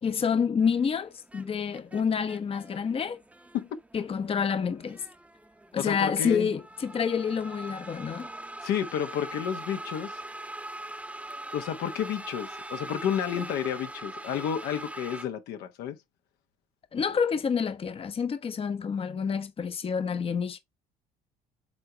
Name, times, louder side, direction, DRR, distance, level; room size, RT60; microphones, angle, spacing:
voice 1, 0.0-3.2 3.9-5.0 5.7-8.3 16.9-20.6, left 6 dB, 35° left, 0.9 m, -28 dB
sound 1, 0.6-15.2, right 1 dB, 10° right, 0.9 m, -42 dB
voice 2, 5.8-6.5 8.6-10.2 11.5-16.0, left 9 dB, 70° left, 1.2 m, -31 dB
7.5 x 3.9 x 3.4 m
supercardioid pair, 70°, 17 cm